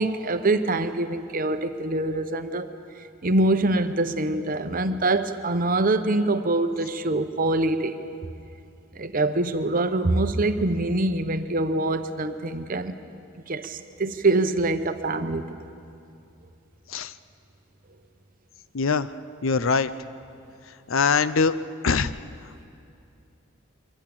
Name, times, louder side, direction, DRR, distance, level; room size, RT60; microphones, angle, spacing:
voice 1, 0.0-2.7 3.2-8.0 8.9-13.0 13.5-15.6, right 2 dB, 40° right, 9 dB, 0.9 m, -24 dB
voice 2, 18.7-19.1 19.4-19.9 20.9-21.5 21.8-22.1, left 5 dB, 65° left, 14 dB, 0.6 m, -22 dB
24.0 x 15.0 x 8.8 m, 2.5 s
head